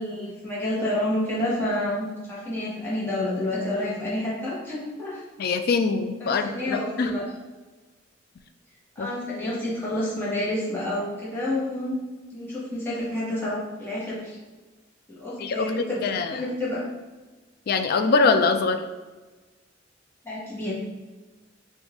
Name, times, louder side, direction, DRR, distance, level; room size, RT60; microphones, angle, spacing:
voice 1, 0.0-5.2 6.2-7.2 8.9-12.0 12.3-14.4 15.2-16.0 16.3-16.8 20.2-20.8, left 1 dB, 10° left, -9 dB, 1.3 m, -29 dB
voice 2, 5.4-7.1 9.0-9.1 15.4-15.7 16.0-16.4 17.7-18.8, left 4 dB, 50° left, 9 dB, 0.3 m, -23 dB
3.9 x 2.6 x 3.5 m, 1.3 s
head